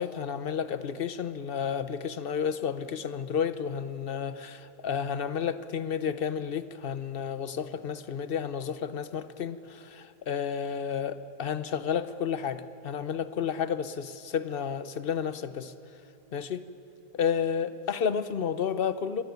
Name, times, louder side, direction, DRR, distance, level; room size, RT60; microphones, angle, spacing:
voice 1, 0.0-15.7 16.3-16.7 17.1-19.2, left 7 dB, 45° left, 13 dB, 0.8 m, -31 dB
25.5 x 18.5 x 9.4 m, 2.8 s
omnidirectional pair, 1.6 m